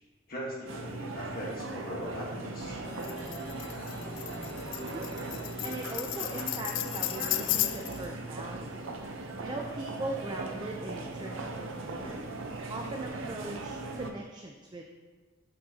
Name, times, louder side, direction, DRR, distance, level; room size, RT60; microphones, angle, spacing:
voice 1, 0.3-2.8, equal, 50° left, -3 dB, 1.4 m, -39 dB
sound 1, 0.7-14.1, right 2 dB, 80° right, 0.7 m, -39 dB
sound 2, 2.8-8.1, left 1 dB, 25° left, 1.6 m, -46 dB
Tambourine, 3.0-8.0, left 15 dB, 65° left, 0.3 m, -34 dB
voice 2, 4.8-5.1 5.6-8.9 9.4-12.2 12.7-15.0, right 2 dB, 20° right, 2 dB, 0.4 m, -40 dB
7.7 x 6.0 x 2.8 m, 1.3 s
head